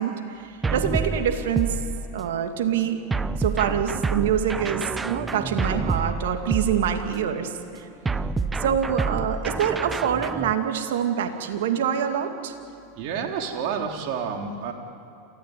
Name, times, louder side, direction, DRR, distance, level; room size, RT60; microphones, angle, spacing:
voice 1, 0.0-1.8 2.1-3.0 3.4-7.9 8.6-12.5, right 8 dB, 75° right, 5 dB, 2.3 m, -25 dB
sound 1, 0.6-2.4 3.1-7.3 8.1-10.5, right 3 dB, 15° right, 0.9 m, -28 dB
voice 2, 8.1-8.4 13.0-14.7, right 6 dB, 55° right, 2 dB, 3.3 m, -30 dB
28.0 x 15.0 x 9.4 m, 2.7 s
hypercardioid pair, 105°, 0 cm